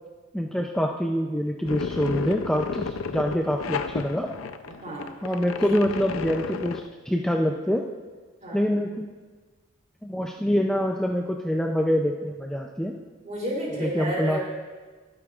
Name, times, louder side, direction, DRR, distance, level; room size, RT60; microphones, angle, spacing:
voice 1, 0.3-4.3 5.2-7.8 8.5-9.1 10.0-12.9 13.8-14.4, equal, 5° left, 1 dB, 0.4 m, -25 dB
sound 1, 1.6-6.9, left 5 dB, 85° left, 0.5 m, -32 dB
voice 2, 4.7-5.3 5.6-5.8 8.4-8.8 13.2-14.4, right 1 dB, 35° right, -3 dB, 3.1 m, -32 dB
21.5 x 8.6 x 2.4 m, 1.4 s
head